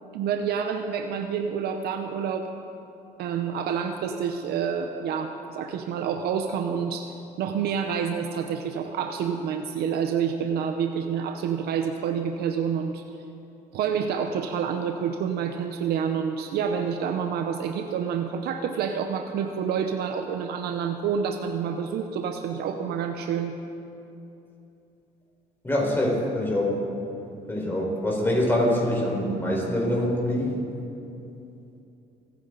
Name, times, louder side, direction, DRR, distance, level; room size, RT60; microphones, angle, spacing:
voice 1, 0.1-2.5 3.2-13.0 13.7-23.6, right 7 dB, 70° right, 6 dB, 0.8 m, -28 dB
voice 2, 25.6-26.7 27.5-30.5, left 1 dB, 15° left, -3 dB, 4.4 m, -24 dB
28.5 x 9.7 x 4.0 m, 2.8 s
cardioid pair, 110°, 17 cm